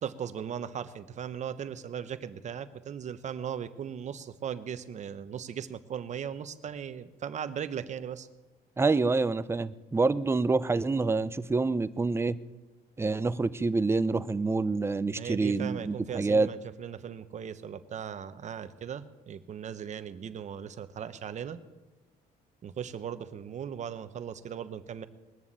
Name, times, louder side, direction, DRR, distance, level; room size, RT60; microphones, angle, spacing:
voice 1, 0.0-8.3 15.1-21.6 22.6-25.1, right 8 dB, 45° right, 11 dB, 1.0 m, -38 dB
voice 2, 8.8-12.4 13.0-16.5, right 3 dB, 15° right, 14 dB, 0.6 m, -27 dB
20.5 x 7.1 x 8.8 m, 1.1 s
cardioid pair, 110°, 17 cm